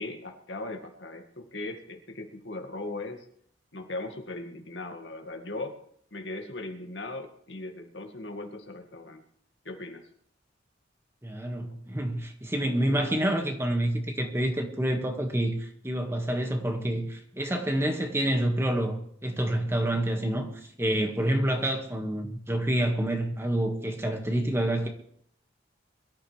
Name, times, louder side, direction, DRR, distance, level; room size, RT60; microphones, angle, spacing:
voice 1, 0.0-3.2 3.7-5.8 6.1-9.2 9.7-10.0 11.7-11.8, left 2 dB, 65° left, 4 dB, 2.0 m, -38 dB
voice 2, 11.2-20.5 20.8-24.9, right 1 dB, 15° right, 3 dB, 1.8 m, -28 dB
22.5 x 13.0 x 3.4 m, 0.65 s
head